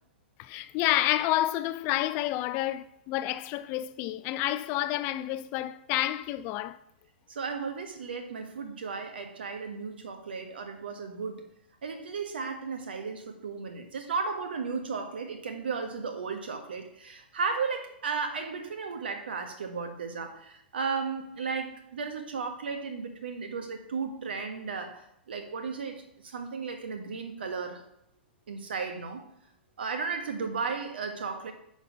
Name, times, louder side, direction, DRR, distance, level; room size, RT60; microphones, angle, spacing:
voice 1, 0.4-6.8, left 15 dB, 35° left, 0.4 m, -29 dB
voice 2, 7.3-11.4 11.8-27.8 28.5-29.2 29.8-31.5, right 5 dB, 70° right, 1.4 m, -35 dB
10.5 x 4.0 x 5.4 m
figure-of-eight pair, 105°, 6 cm